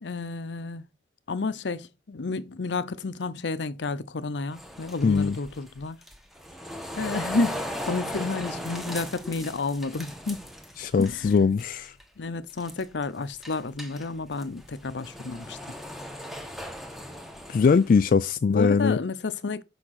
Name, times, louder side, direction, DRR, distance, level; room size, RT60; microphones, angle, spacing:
voice 1, 0.0-0.9 1.3-6.0 7.0-10.5 11.0-11.3 12.2-15.6 18.5-19.6, left 3 dB, 75° left, 0.7 m, -31 dB
sound 1, 4.5-11.3 11.6-12.0 12.5-13.0 13.4-18.0, equal, ahead, 1.1 m, -38 dB
voice 2, 5.0-5.4 10.8-11.9 17.5-19.0, left 5 dB, 50° left, 0.3 m, -21 dB
6.3 x 5.7 x 5.8 m
head